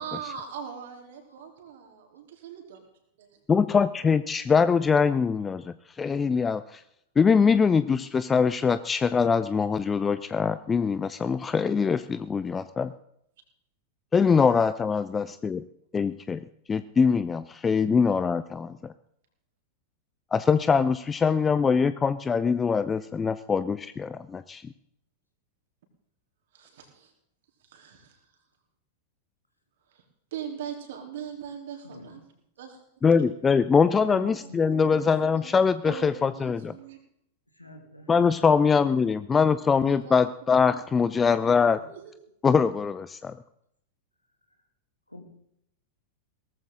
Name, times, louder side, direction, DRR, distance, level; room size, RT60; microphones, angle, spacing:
voice 1, 0.0-2.8 3.2-3.4 26.5-27.1 27.6-28.3 29.9-30.0 30.3-32.2 32.6-32.8 34.2-34.4 34.7-35.1 35.3-37.0 39.8-40.2 40.7-40.8 41.7-42.2, right 8 dB, 55° right, 3 dB, 3.6 m, -41 dB
voice 2, 3.5-6.8 7.2-12.9 14.1-15.6 15.9-16.4 16.7-18.9 20.3-24.6 33.0-36.8 38.1-41.8 42.4-43.4, left 5 dB, 20° left, 14 dB, 0.5 m, -23 dB
voice 3, 31.8-32.3 33.8-35.5 37.5-39.6 40.0-40.3 41.8-41.9 45.1-45.2, left 1 dB, 85° left, 5 dB, 2.4 m, -47 dB
18.5 x 14.0 x 3.8 m, 0.72 s
figure-of-eight pair, 90°, 0 cm